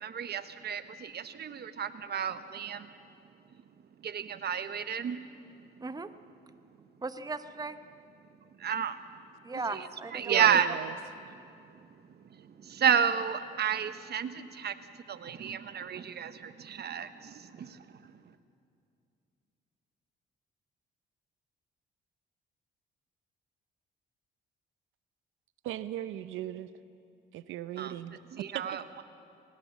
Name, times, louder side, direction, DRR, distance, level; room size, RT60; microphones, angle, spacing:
voice 1, 0.0-2.8 4.0-5.2 8.6-8.9 9.7-9.8 10.1-10.7 12.8-14.7 15.2-16.3 16.7-17.1 27.8-27.9 28.3-29.0, right 8 dB, 55° right, 12 dB, 1.1 m, -30 dB
voice 2, 7.0-7.8 9.4-10.5, right 3 dB, 20° right, 10 dB, 0.9 m, -37 dB
voice 3, 10.2-10.9 25.6-26.7 27.3-28.8, right 12 dB, 90° right, 13 dB, 0.6 m, -37 dB
21.0 x 19.0 x 7.4 m, 2.5 s
cardioid pair, 90°, 20 cm